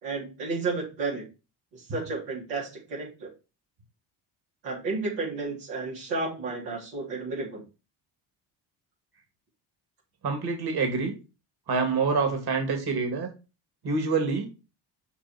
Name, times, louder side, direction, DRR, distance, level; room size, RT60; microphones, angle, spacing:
voice 1, 0.0-1.2 1.7-3.3 4.6-7.6, right 3 dB, 90° right, -4 dB, 3.4 m, -32 dB
voice 2, 10.2-11.1 11.7-13.3 13.8-14.5, right 4 dB, 50° right, 3 dB, 2.6 m, -26 dB
6.0 x 5.9 x 4.5 m, 0.30 s
hypercardioid pair, 55°, 49 cm